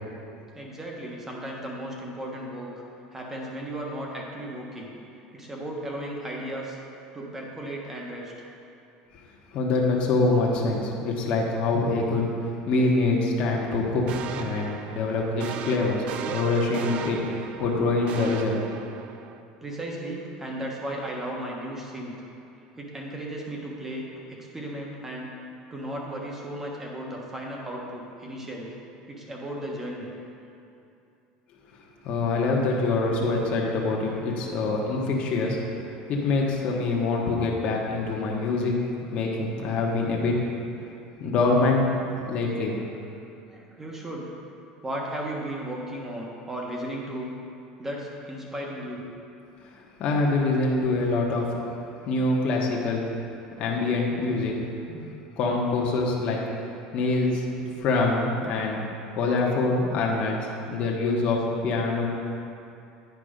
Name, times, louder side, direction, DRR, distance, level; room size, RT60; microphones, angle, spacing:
voice 1, 0.5-2.7 3.1-5.0 5.3-6.8 7.1-8.3 19.6-22.1 22.8-25.3 25.7-28.8 29.1-30.1 43.5-44.3 44.8-47.3 47.8-49.0 56.9-57.4, right 1 dB, 15° right, -2 dB, 1.3 m, -35 dB
voice 2, 9.5-18.6 32.0-35.6 36.1-38.8 39.1-40.4 41.2-41.8 42.2-42.8 50.0-51.5 52.1-53.1 53.6-54.5 54.9-55.1 55.4-56.4 56.9-57.4 57.8-58.8 59.2-62.1, left 3 dB, 45° left, -2 dB, 1.2 m, -25 dB
sound 1, 14.1-19.4, right 8 dB, 45° right, 0.4 m, -37 dB
9.4 x 5.2 x 5.1 m, 2.7 s
cardioid pair, 140°, 3 cm